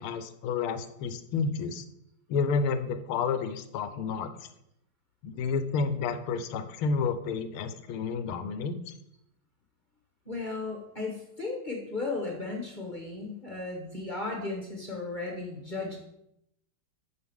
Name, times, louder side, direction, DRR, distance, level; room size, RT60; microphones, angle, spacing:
voice 1, 0.0-1.8 2.3-4.3 5.2-8.9, left 5 dB, 85° left, 10 dB, 1.6 m, -30 dB
voice 2, 10.2-16.0, left 3 dB, 30° left, 0 dB, 1.0 m, -35 dB
9.5 x 6.2 x 3.6 m, 0.80 s
omnidirectional pair, 2.4 m